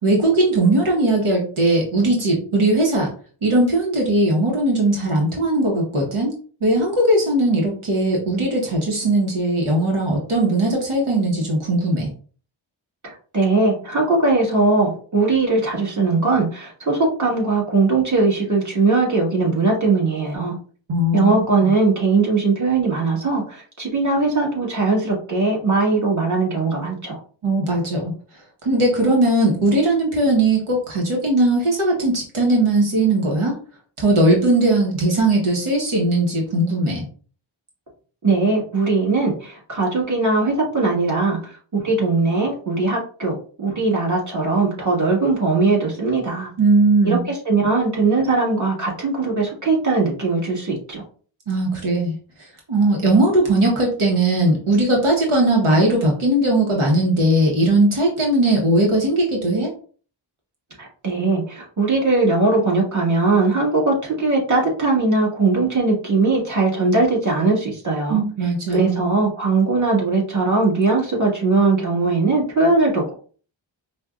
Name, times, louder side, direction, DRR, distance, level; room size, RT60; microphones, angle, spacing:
voice 1, 0.0-3.1 3.4-6.3 6.6-12.1 20.9-21.7 27.4-28.1 28.6-33.6 34.0-37.0 46.6-47.2 51.5-52.1 52.7-59.7 68.1-69.1, right 2 dB, 85° right, -1 dB, 1.0 m, -19 dB
voice 2, 13.0-20.6 21.1-27.2 38.2-41.4 41.8-46.5 47.0-51.0 60.8-68.2 68.7-73.2, right 3 dB, 35° right, -3 dB, 1.6 m, -20 dB
5.0 x 2.2 x 2.3 m, 0.41 s
wide cardioid pair, 65°, 48 cm